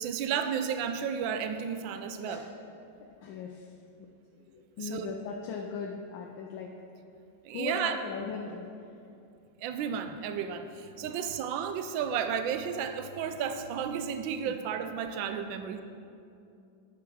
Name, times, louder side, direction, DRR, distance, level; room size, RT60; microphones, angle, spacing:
voice 1, 0.0-2.4 4.8-5.1 7.4-8.0 9.6-15.8, right 7 dB, 85° right, 8 dB, 1.3 m, -33 dB
voice 2, 3.2-3.8 4.3-6.7 7.5-9.3 11.1-11.2, left 5 dB, 80° left, 1 dB, 1.4 m, -39 dB
9.7 x 5.8 x 6.2 m, 2.6 s
omnidirectional pair, 2.1 m